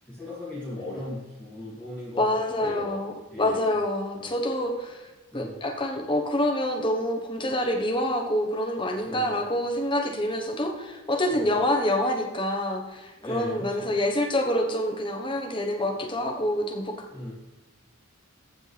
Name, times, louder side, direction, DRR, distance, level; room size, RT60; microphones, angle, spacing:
voice 1, 0.1-2.2 2.6-3.0 3.3-3.7 4.2-4.3 5.3-5.6 9.0-9.4 11.3-11.5 13.2-13.9 17.1-17.3, left 1 dB, 5° left, -12 dB, 2.8 m, -37 dB
voice 2, 2.2-5.0 5.3-17.1, left 1 dB, 20° left, 1 dB, 1.3 m, -27 dB
14.5 x 6.3 x 3.5 m, 1.2 s
head